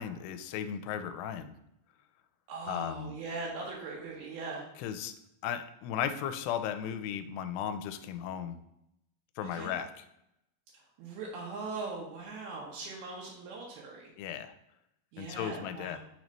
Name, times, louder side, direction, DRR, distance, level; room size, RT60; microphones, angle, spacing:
voice 1, 0.0-1.5 2.7-3.1 4.8-5.1 5.4-8.6 9.4-9.9 14.2-14.5 15.2-16.0, left 9 dB, 85° left, 10 dB, 2.6 m, -35 dB
voice 2, 2.5-4.7 9.4-9.7 10.7-14.1 15.1-16.0, right 3 dB, 75° right, -3 dB, 2.8 m, -40 dB
6.4 x 3.1 x 5.2 m, 0.81 s
omnidirectional pair, 4.6 m